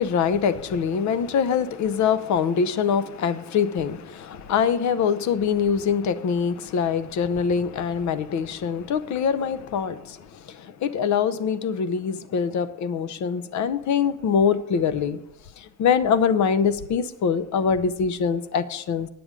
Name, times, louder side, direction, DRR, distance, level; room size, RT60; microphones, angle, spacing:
voice 1, 0.0-15.2 15.6-19.1, left 6 dB, 70° left, 0.7 m, -24 dB
9.6 x 7.7 x 5.0 m
cardioid pair, 90°, 30 cm